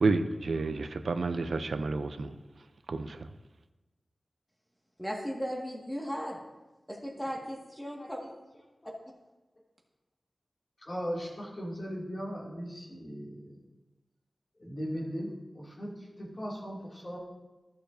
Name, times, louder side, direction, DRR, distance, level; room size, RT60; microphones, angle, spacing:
voice 1, 0.0-2.3 2.9-3.2, right 3 dB, 85° right, 9 dB, 0.5 m, -30 dB
voice 2, 5.0-6.4 6.9-8.2, equal, 5° left, -1 dB, 1.8 m, -36 dB
voice 3, 8.0-8.3 8.8-8.9 10.8-13.6 14.6-17.2, equal, 35° left, -4 dB, 2.5 m, -38 dB
14.0 x 6.7 x 2.7 m, 1.1 s
wide cardioid pair, 90°, 0 cm